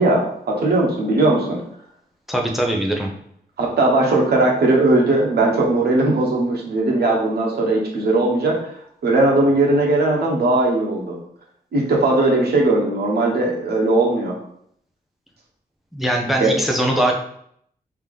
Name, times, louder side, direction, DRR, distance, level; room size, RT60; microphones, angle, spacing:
voice 1, 0.0-1.6 3.6-8.7 9.0-11.2 11.7-14.4 16.4-16.5, right 2 dB, 85° right, -1 dB, 1.0 m, -18 dB
voice 2, 2.3-3.1 15.9-17.1, right 1 dB, ahead, 0 dB, 0.5 m, -21 dB
3.4 x 2.9 x 3.6 m, 0.68 s
wide cardioid pair, 165°, 16 cm